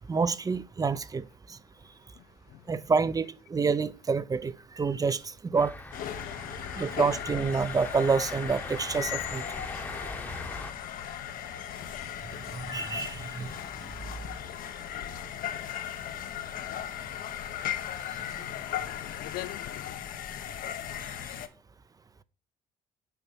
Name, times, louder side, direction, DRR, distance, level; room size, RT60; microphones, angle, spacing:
voice 1, 0.1-1.6 2.7-5.7 6.8-9.4 12.5-13.9 18.1-18.5, right 5 dB, 25° right, 0.6 m, -28 dB
voice 2, 1.8-2.7 6.4-6.8 18.4-20.0, left 17 dB, 85° left, 0.5 m, -44 dB
sound 1, 5.5-10.7, left 2 dB, 10° left, 1.0 m, -41 dB
sound 2, 5.9-21.5, left 10 dB, 70° left, 1.0 m, -37 dB
6.9 x 5.4 x 6.3 m
cardioid pair, 110°, 15 cm